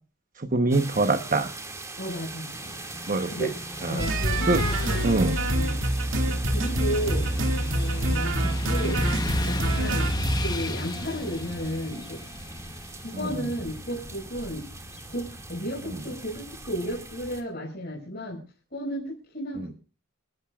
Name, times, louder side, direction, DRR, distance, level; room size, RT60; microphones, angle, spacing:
voice 1, 0.4-1.5 3.1-3.5 3.8-4.0 4.5-4.6 5.0-5.4 6.3-6.4 8.4-8.6, right 2 dB, 40° right, 8 dB, 1.0 m, -24 dB
sound 1, 0.7-17.4, right 2 dB, 15° right, 2.1 m, -41 dB
voice 2, 2.0-2.8 3.2-3.5 3.9-5.1 5.5-6.1 6.4-7.3 7.7-8.3 8.7-9.0 9.5-12.2 13.0-14.7 15.1-18.4 18.7-19.7, equal, 50° left, -3 dB, 5.6 m, -33 dB
Motorcycle / Traffic noise roadway noise, 2.5-16.6, left 2 dB, 20° left, 0.9 m, -37 dB
sound 2, 4.0-10.6, right 1 dB, 65° right, 2.3 m, -26 dB
29.0 x 12.0 x 2.4 m, 0.38 s
head